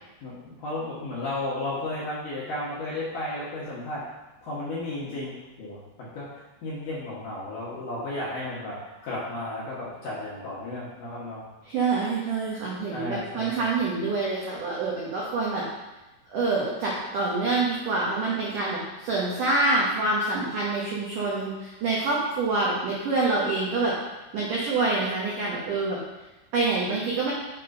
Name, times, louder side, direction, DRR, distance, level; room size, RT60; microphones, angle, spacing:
voice 1, 0.2-4.0 4.4-11.4 12.9-13.7, left 2 dB, 65° left, -8 dB, 2.2 m, -34 dB
voice 2, 11.7-15.6 16.3-23.9 24.3-26.0 26.5-27.3, right 3 dB, 80° right, -5 dB, 1.8 m, -26 dB
7.5 x 4.3 x 5.3 m, 1.0 s
omnidirectional pair, 5.5 m